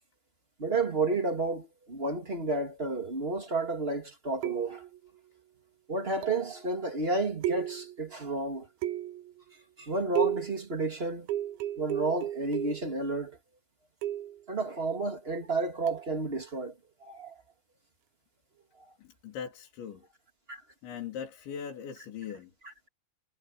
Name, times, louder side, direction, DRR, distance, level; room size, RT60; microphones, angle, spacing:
voice 1, 0.6-4.8 5.9-8.7 9.8-11.3 11.8-13.4 14.5-16.7 17.0-17.3 20.5-20.6, right 2 dB, 20° right, 2.0 m, -31 dB
sound 1, 4.4-5.0 6.2-6.6 7.4-8.0 8.8-9.3 10.2-10.6 11.3-12.9 14.0-14.4 15.9-16.1, right 12 dB, 85° right, 3.3 m, -33 dB
voice 2, 19.0-20.0 20.8-22.5, left 8 dB, 85° left, 6.1 m, -40 dB
omnidirectional pair, 5.1 m